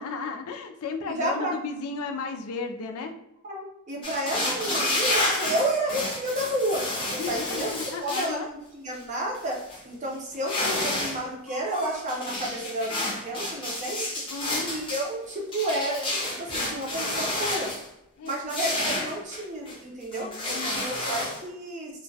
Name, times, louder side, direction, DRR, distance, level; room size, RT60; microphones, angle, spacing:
voice 1, 0.0-3.2 7.2-8.5 14.3-14.7 18.2-18.4 20.2-20.8, left 4 dB, 70° left, 5 dB, 0.3 m, -34 dB
voice 2, 1.1-1.6 3.4-6.9 7.1-7.7 8.0-14.2 14.7-17.7 18.2-20.3 20.6-21.9, right 1 dB, 35° right, -1 dB, 0.5 m, -31 dB
sound 1, 4.0-8.3 8.9-9.0 9.3-9.8 10.3-11.2 11.5-17.8 18.3-19.8 20.1-21.4, left 1 dB, 25° left, 0.6 m, -30 dB
2.2 x 2.1 x 2.6 m, 0.85 s
head